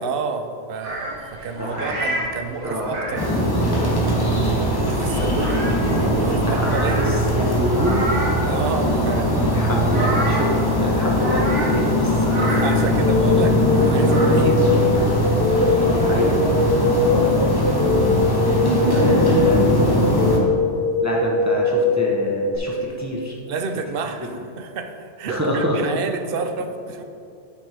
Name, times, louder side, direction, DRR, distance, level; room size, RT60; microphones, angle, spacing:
voice 1, 0.0-3.2 4.6-5.7 6.0-7.1 8.5-10.1 12.4-14.7 15.9-16.4 18.7-19.2 23.5-27.0, right 5 dB, 60° right, 6 dB, 0.7 m, -30 dB
sound 1, 0.8-16.3, right 1 dB, 85° right, 1.8 m, -32 dB
voice 2, 1.6-1.9 2.6-3.2 6.5-6.7 7.0-8.2 9.4-12.6 15.0-15.2 15.9-16.4 17.0-17.3 18.8-19.6 21.0-23.3 25.3-25.8, equal, 15° right, -3 dB, 0.8 m, -26 dB
sound 2, 3.2-20.4, equal, 20° left, 1.0 m, -20 dB
sound 3, 13.0-22.6, left 3 dB, 55° left, 0.9 m, -22 dB
9.1 x 6.1 x 3.4 m, 2.6 s
omnidirectional pair, 1.2 m